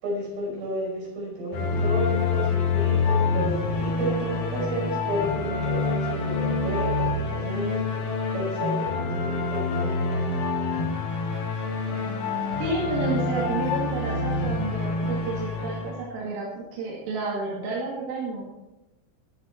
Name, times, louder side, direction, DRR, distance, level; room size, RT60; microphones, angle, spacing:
voice 1, 0.0-10.4, right 1 dB, 60° right, -3 dB, 7.6 m, -32 dB
sound 1, 1.5-16.0, left 4 dB, 60° left, 3.6 m, -27 dB
voice 2, 12.6-18.5, right 3 dB, 85° right, -4 dB, 4.9 m, -31 dB
21.0 x 7.3 x 4.5 m, 1.0 s
omnidirectional pair, 5.7 m